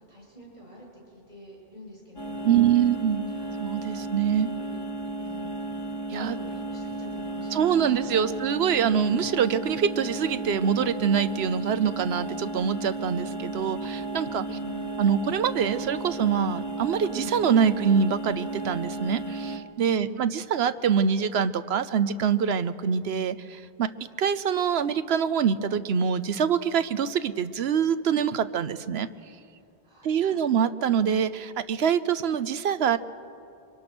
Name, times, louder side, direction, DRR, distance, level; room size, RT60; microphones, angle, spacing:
voice 1, 0.1-2.7 3.3-5.6 6.2-8.4 14.5-15.0 19.8-20.3 29.8-30.6, equal, 50° right, -3 dB, 8.1 m, -47 dB
sound 1, 2.2-19.6, right 2 dB, 25° left, 1.0 m, -34 dB
voice 2, 2.4-3.3 3.6-4.5 6.1-6.4 7.5-14.4 15.0-23.9 24.2-29.1 30.0-33.0, right 7 dB, 80° right, 14 dB, 1.0 m, -25 dB
27.0 x 23.5 x 6.1 m, 2.6 s
omnidirectional pair, 1.0 m